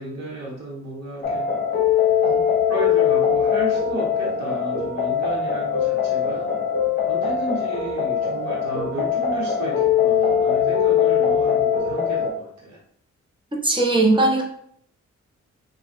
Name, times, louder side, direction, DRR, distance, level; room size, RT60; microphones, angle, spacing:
voice 1, 0.0-1.5 2.3-6.5 7.1-12.8, right 1 dB, 60° right, -4 dB, 1.0 m, -33 dB
sound 1, 1.2-12.3, left 7 dB, 30° left, 0.9 m, -21 dB
voice 2, 13.6-14.4, right 2 dB, 15° right, -1 dB, 0.7 m, -18 dB
3.1 x 2.2 x 2.6 m, 0.66 s
cardioid pair, 60°, 30 cm